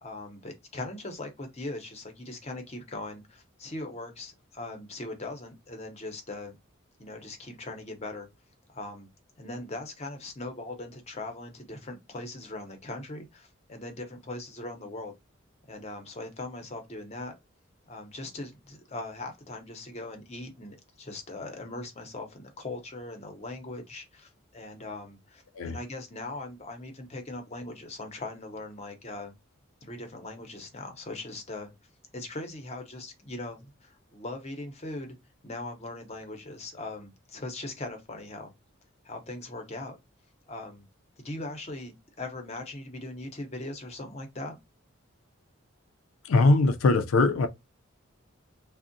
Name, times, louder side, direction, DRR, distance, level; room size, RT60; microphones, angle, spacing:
voice 1, 0.0-6.6 7.0-8.3 8.7-9.1 9.4-15.1 15.7-17.3 17.9-29.3 29.8-31.7 32.1-35.2 35.4-38.5 39.0-40.0 40.5-40.9 41.2-44.6, left 2 dB, 30° left, 0.6 m, -40 dB
voice 2, 46.2-47.5, left 3 dB, 80° left, 0.4 m, -21 dB
3.5 x 2.1 x 2.5 m
head